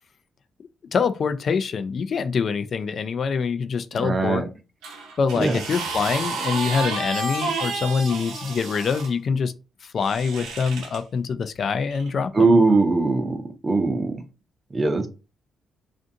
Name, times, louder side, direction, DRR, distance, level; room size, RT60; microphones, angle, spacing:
voice 1, 0.9-4.4 5.2-9.5 9.8-12.5, left 5 dB, 60° left, 0.3 m, -25 dB
voice 2, 4.0-4.5 5.3-5.6 12.3-13.4 13.6-14.1 14.7-15.1, right 3 dB, 35° right, 0.7 m, -20 dB
sound 1, 4.8-9.1 10.0-11.0 11.9-12.1, right 3 dB, 85° right, 0.7 m, -30 dB
2.5 x 2.4 x 2.6 m
supercardioid pair, 60°, 0 cm